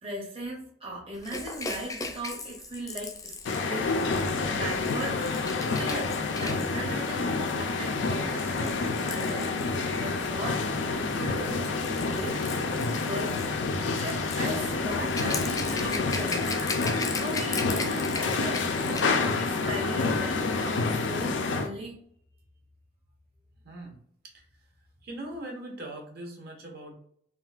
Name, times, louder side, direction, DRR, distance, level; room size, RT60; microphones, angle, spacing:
voice 1, 0.0-4.0 4.5-5.2 5.7-9.5 10.0-12.4 13.0-13.4 14.0-16.7 17.2-22.0, right 1 dB, 30° right, -3 dB, 0.7 m, -38 dB
Rattle / Rattle (instrument), 1.2-10.2 11.2-19.3 19.6-19.7, left 4 dB, 20° left, 0.3 m, -38 dB
sound 1, 3.4-21.7, left 3 dB, 80° left, 0.5 m, -28 dB
voice 2, 23.6-24.0 24.2-24.5 25.0-26.9, right 1 dB, 60° right, 1 dB, 0.9 m, -40 dB
3.7 x 2.5 x 2.4 m, 0.63 s
head